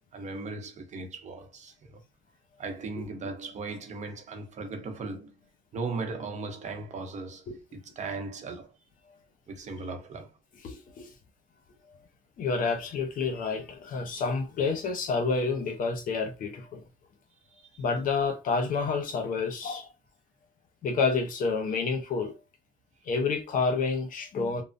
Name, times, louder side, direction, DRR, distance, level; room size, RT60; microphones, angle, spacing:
voice 1, 0.1-2.0 2.6-5.4 5.7-8.7 9.5-10.3 17.5-17.8, right 3 dB, 45° right, 0.8 m, -38 dB
voice 2, 10.6-11.1 12.4-16.8 17.8-19.9 20.8-22.3 23.1-24.6, left 4 dB, 55° left, 0.9 m, -29 dB
3.2 x 2.0 x 2.6 m
cardioid pair, 110°, 17 cm